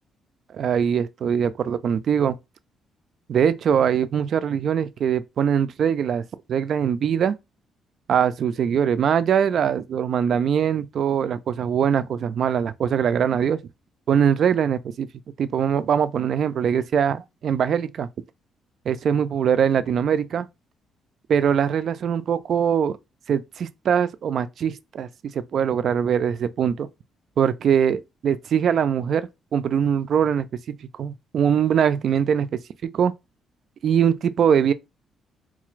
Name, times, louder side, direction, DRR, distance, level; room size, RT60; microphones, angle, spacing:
voice 1, 0.5-2.4 3.3-6.2 6.5-7.4 8.1-13.6 14.1-15.1 15.4-18.1 18.9-20.5 21.3-23.0 23.3-25.1 25.3-26.9 27.4-33.1 33.8-34.7, right 8 dB, 60° right, 0.3 m, -22 dB
3.8 x 2.4 x 3.1 m
cardioid pair, 90°, 0 cm